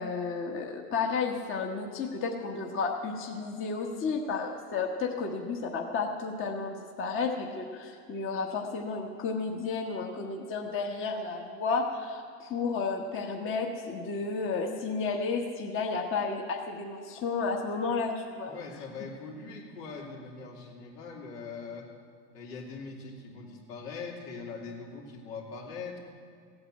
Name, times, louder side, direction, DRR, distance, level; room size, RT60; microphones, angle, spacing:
voice 1, 0.0-18.5, left 4 dB, 25° left, 2 dB, 1.3 m, -32 dB
voice 2, 18.5-21.9 22.3-26.0, left 4 dB, 75° left, -1 dB, 3.3 m, -42 dB
15.5 x 8.7 x 7.8 m, 2.3 s
hypercardioid pair, 120°, 48 cm